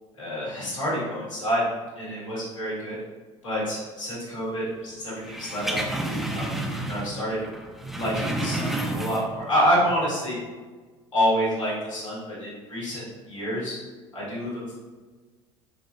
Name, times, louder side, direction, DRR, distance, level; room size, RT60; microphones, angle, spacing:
voice 1, 0.2-1.6 1.9-2.9 3.4-5.8 6.3-6.5 6.8-7.4 7.9-10.4 11.1-13.7 14.1-14.7, equal, 90° left, -8 dB, 1.5 m, -27 dB
sound 1, 5.2-7.2 7.4-9.5 9.8-9.9, right 1 dB, ahead, 0.4 m, -30 dB
4.1 x 3.0 x 2.5 m, 1.3 s
hypercardioid pair, 70°, 16 cm